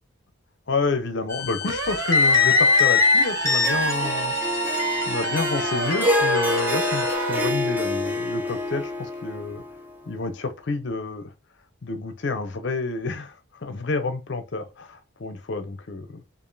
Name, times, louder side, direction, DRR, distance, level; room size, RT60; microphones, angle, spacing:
voice 1, 0.7-9.6 10.1-11.3 11.8-13.3 13.6-16.2, left 3 dB, 55° left, 0.6 m, -29 dB
sound 1, 1.3-7.1, left 4 dB, 15° left, 1.0 m, -23 dB
sound 2, 1.7-7.5, right 5 dB, 65° right, 0.7 m, -30 dB
Harp, 3.5-9.8, left 1 dB, 10° right, 0.5 m, -27 dB
4.9 x 2.5 x 2.6 m
head